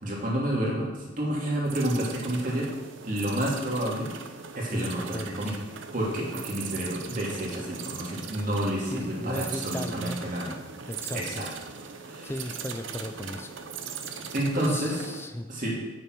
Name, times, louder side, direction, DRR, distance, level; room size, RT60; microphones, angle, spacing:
voice 1, 0.0-2.7 3.0-4.1 4.5-5.6 5.9-10.6 11.1-11.5 12.1-12.4 14.3-14.9 15.5-15.8, right 1 dB, 45° right, -4 dB, 2.7 m, -29 dB
sound 1, 1.7-15.3, right 6 dB, 85° right, 0.8 m, -40 dB
voice 2, 4.7-5.4 8.9-10.2 10.9-11.4 12.2-13.5 14.1-14.2 14.5-15.5, left 1 dB, 15° left, 8 dB, 0.5 m, -36 dB
8.8 x 6.6 x 6.2 m, 1.2 s
head